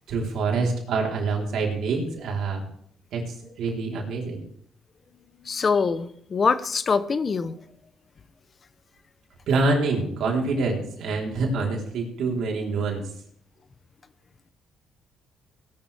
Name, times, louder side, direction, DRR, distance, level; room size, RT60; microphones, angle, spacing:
voice 1, 0.1-2.6 3.1-4.4 9.5-13.1, right 3 dB, 75° right, 0 dB, 3.9 m, -26 dB
voice 2, 5.4-7.5, left 5 dB, 40° left, 14 dB, 0.8 m, -24 dB
18.5 x 12.0 x 3.5 m, 0.66 s
cardioid pair, 85°, 0 cm